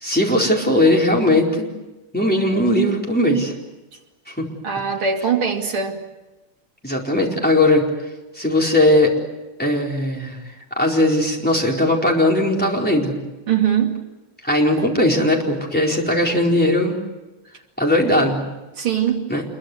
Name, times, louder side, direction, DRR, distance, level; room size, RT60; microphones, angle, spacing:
voice 1, 0.0-1.7 2.1-3.5 4.3-4.5 6.8-7.8 8.3-9.1 9.6-10.4 10.8-13.2 14.4-17.0 17.8-18.4 19.3-19.4, left 1 dB, 5° left, -2 dB, 4.4 m, -18 dB
voice 2, 4.6-6.0 13.5-14.0 18.8-19.3, right 7 dB, 75° right, 2 dB, 3.5 m, -21 dB
27.5 x 23.0 x 8.1 m, 1.1 s
omnidirectional pair, 2.3 m